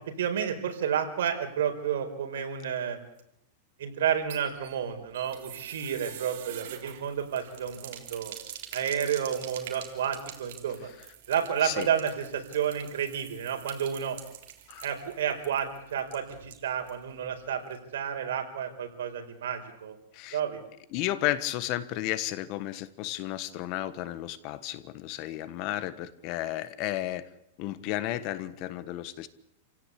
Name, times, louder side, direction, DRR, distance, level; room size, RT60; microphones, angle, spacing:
voice 1, 0.0-3.0 3.8-8.3 8.7-10.9 11.3-14.2 14.8-20.0 20.3-20.6, right 8 dB, 80° right, 4 dB, 4.7 m, -31 dB
sound 1, 4.1-17.0 17.3-17.4 17.7-17.8, right 11 dB, 60° right, 3.8 m, -46 dB
voice 2, 20.9-27.3 27.6-29.3, left 14 dB, 40° left, 15 dB, 1.3 m, -33 dB
28.5 x 17.0 x 8.4 m, 0.79 s
supercardioid pair, 160°, 0 cm